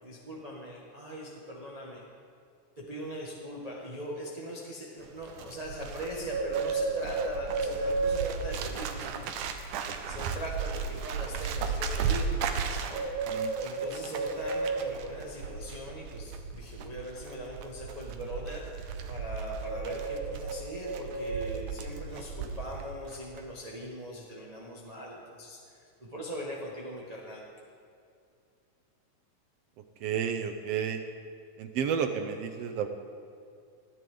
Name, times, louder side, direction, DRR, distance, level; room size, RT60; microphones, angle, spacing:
voice 1, 0.0-2.0 2.7-9.5 10.1-12.4 12.9-13.1 13.6-27.4, equal, 20° right, -4 dB, 1.3 m, -41 dB
Bird, 5.0-22.9 23.1-23.4, right 5 dB, 85° right, 2.4 m, -33 dB
voice 2, 30.0-31.0 31.6-32.9, right 7 dB, 70° right, 7 dB, 1.6 m, -31 dB
20.5 x 14.0 x 3.9 m, 2.4 s
omnidirectional pair, 3.5 m